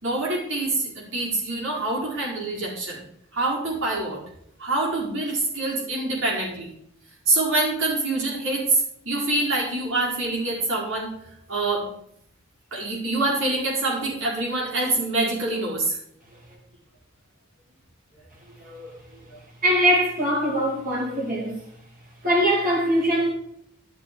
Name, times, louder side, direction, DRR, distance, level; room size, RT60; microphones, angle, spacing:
voice 1, 0.0-3.0 3.3-4.2 4.6-6.7 7.3-11.1 11.5-11.9 12.7-16.0 18.6-18.9, right 2 dB, 65° right, -4 dB, 4.7 m, -25 dB
voice 2, 19.6-21.6 22.2-23.3, equal, 45° right, -3 dB, 4.1 m, -22 dB
12.0 x 6.6 x 5.1 m, 0.71 s
head